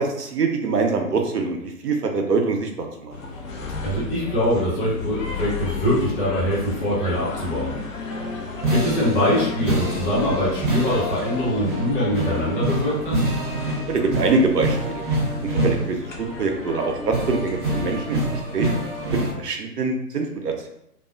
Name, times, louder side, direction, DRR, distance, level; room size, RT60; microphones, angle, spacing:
voice 1, 0.0-3.1 13.9-15.0 15.4-18.7 19.0-20.7, right 3 dB, 80° right, 3 dB, 0.6 m, -24 dB
sound 1, 3.1-18.4, left 4 dB, 55° left, 0.6 m, -34 dB
voice 2, 3.8-7.8 8.7-13.2, equal, 35° left, -6 dB, 1.1 m, -23 dB
sound 2, 7.9-19.3, right 1 dB, 35° right, 0.6 m, -27 dB
2.3 x 2.3 x 2.3 m, 0.77 s
figure-of-eight pair, 120°, 47 cm